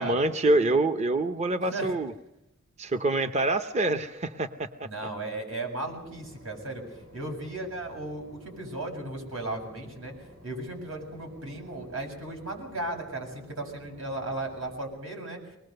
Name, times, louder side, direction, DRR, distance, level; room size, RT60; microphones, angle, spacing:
voice 1, 0.0-2.1 2.8-4.9, right 2 dB, 35° right, 8 dB, 0.7 m, -26 dB
voice 2, 4.8-6.8 7.1-10.1 10.4-15.4, right 2 dB, 85° right, 2 dB, 7.2 m, -35 dB
Boat Water vehicle / Engine, 5.8-14.8, equal, 60° right, 6.8 m, -52 dB
25.0 x 20.5 x 6.6 m, 0.90 s
head